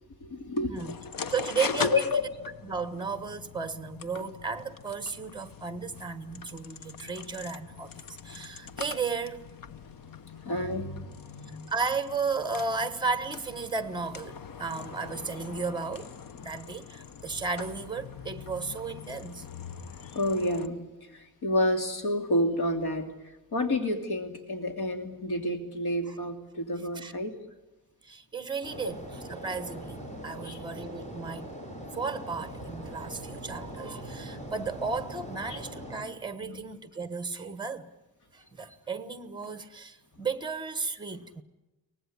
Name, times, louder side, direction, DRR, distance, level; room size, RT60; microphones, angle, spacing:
voice 1, 0.2-0.8 1.9-2.2 8.3-8.5 10.4-11.7 20.0-23.1 23.5-27.3 30.1-30.6 35.5-35.6 36.4-36.6, left 1 dB, 90° left, 3.1 m, -30 dB
sound 1, 0.7-20.7, left 6 dB, 65° left, 0.9 m, -41 dB
voice 2, 1.3-2.2 2.6-9.4 11.7-16.1 16.4-19.5 19.9-20.0 26.1-26.2 26.9-27.1 28.0-31.5 31.9-37.9 38.3-41.4, right 4 dB, 10° right, 1.2 m, -34 dB
sound 2, 28.6-36.0, equal, 20° left, 5.6 m, -41 dB
24.0 x 18.5 x 9.8 m
wide cardioid pair, 180°, 37 cm